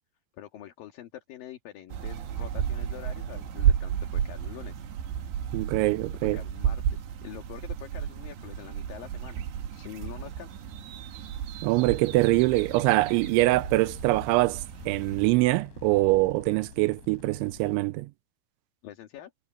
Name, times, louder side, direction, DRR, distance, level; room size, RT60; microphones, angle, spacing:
voice 1, 0.3-4.8 6.3-6.8 7.2-9.4 9.7-10.5 18.8-19.3, left 12 dB, 60° left, 3.1 m, -45 dB
sound 1, 1.9-15.3, right 9 dB, 70° right, 3.9 m, -32 dB
voice 2, 5.5-6.4 11.6-18.1, right 20 dB, 90° right, 3.0 m, -24 dB
sound 2, 12.1-17.8, left 5 dB, 80° left, 8.1 m, -47 dB
omnidirectional pair, 5.4 m